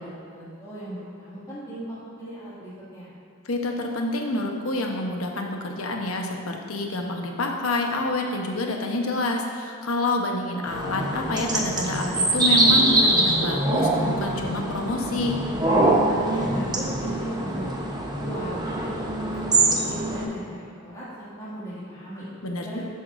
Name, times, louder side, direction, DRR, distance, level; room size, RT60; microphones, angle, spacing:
voice 1, 0.0-3.2 16.0-22.3 22.6-22.8, equal, 20° left, -10 dB, 2.3 m, -38 dB
voice 2, 3.4-15.4 22.4-22.8, left 2 dB, 80° left, 1 dB, 1.1 m, -28 dB
sound 1, 10.7-20.2, right 2 dB, 20° right, 0.9 m, -23 dB
13.0 x 8.2 x 2.7 m, 2.2 s
head